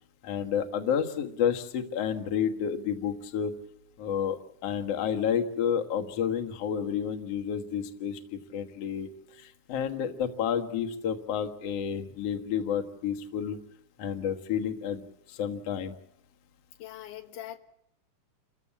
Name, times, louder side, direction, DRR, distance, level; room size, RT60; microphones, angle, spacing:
voice 1, 0.2-3.5 4.0-9.1 9.4-13.6 14.0-15.0 15.3-15.9, left 8 dB, 55° left, 4 dB, 2.4 m, -30 dB
voice 2, 16.8-17.6, left 13 dB, 80° left, 6 dB, 2.9 m, -41 dB
29.0 x 15.0 x 8.3 m, 0.77 s
omnidirectional pair, 3.6 m